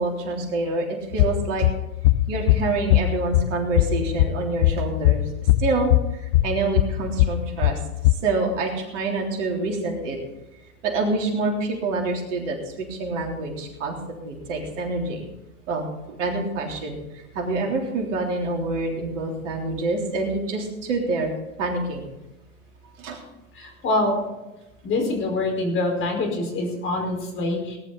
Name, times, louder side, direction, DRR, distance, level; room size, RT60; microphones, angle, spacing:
voice 1, 0.0-1.7 2.3-5.2 5.6-7.8 8.2-10.2 10.8-14.0 14.2-15.2 15.7-21.3 21.6-22.1 23.0-23.2, right 3 dB, 55° right, 1 dB, 3.5 m, -27 dB
sound 1, 1.1-8.1, left 15 dB, 45° left, 0.6 m, -21 dB
voice 2, 23.5-24.2 24.8-27.8, left 2 dB, 25° left, 2 dB, 4.9 m, -25 dB
19.5 x 11.0 x 4.1 m, 0.97 s
hypercardioid pair, 105°, 44 cm